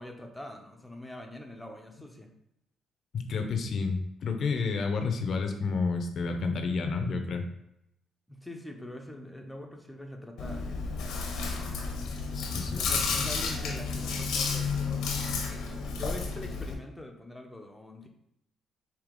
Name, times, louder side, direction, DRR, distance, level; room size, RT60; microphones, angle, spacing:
voice 1, 0.0-2.3 8.3-10.8 12.6-15.1 15.7-18.1, left 1 dB, 5° left, 3 dB, 0.7 m, -43 dB
voice 2, 3.1-7.4 12.3-12.9, left 4 dB, 60° left, 5 dB, 0.6 m, -30 dB
Chewing mastication, 10.4-16.7, left 4 dB, 90° left, 0.8 m, -31 dB
4.9 x 2.8 x 3.7 m, 0.81 s
cardioid pair, 90°, 0 cm